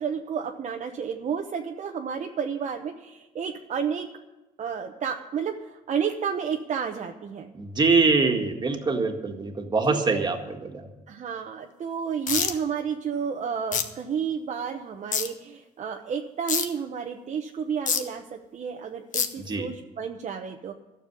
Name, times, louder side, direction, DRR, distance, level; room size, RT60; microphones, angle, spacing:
voice 1, 0.0-4.1 4.6-7.5 9.9-10.3 11.1-20.7, right 7 dB, 45° right, 3 dB, 0.9 m, -31 dB
voice 2, 7.5-10.9 19.4-19.7, right 4 dB, 25° right, 4 dB, 1.9 m, -24 dB
sound 1, 12.3-12.5 13.7-13.8 15.1-15.3 16.5-16.6 17.9-18.0 19.1-19.3, left 7 dB, 50° left, 1.3 m, -24 dB
13.0 x 7.2 x 9.8 m, 1.0 s
cardioid pair, 110°, 17 cm